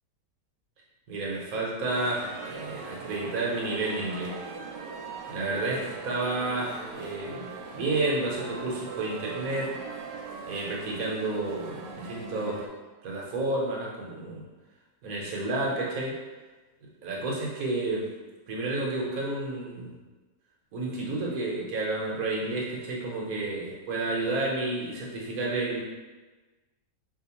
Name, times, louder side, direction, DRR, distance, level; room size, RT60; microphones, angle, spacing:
voice 1, 1.1-4.3 5.3-9.7 10.4-12.6 13.0-14.4 15.0-16.1 16.8-18.1 18.5-19.9 20.7-25.8, right 2 dB, 65° right, -3 dB, 1.2 m, -31 dB
sound 1, 1.9-12.7, right 4 dB, 90° right, 1.2 m, -40 dB
4.4 x 2.8 x 2.9 m, 1.2 s
omnidirectional pair, 1.8 m